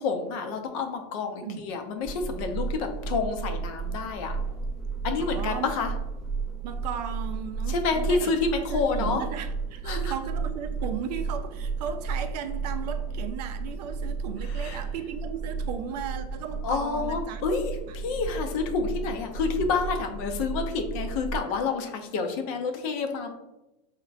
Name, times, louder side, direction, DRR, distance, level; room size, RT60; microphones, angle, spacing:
voice 1, 0.0-4.4 5.0-5.9 7.7-9.2 9.9-10.1 14.6-14.8 16.6-23.3, left 4 dB, 60° left, 0.5 m, -29 dB
sound 1, 2.0-21.4, right 5 dB, ahead, 0.5 m, -33 dB
voice 2, 5.2-5.7 6.6-8.3 8.6-17.4, right 7 dB, 75° right, 0.4 m, -36 dB
3.9 x 2.1 x 2.4 m
supercardioid pair, 125°, 21 cm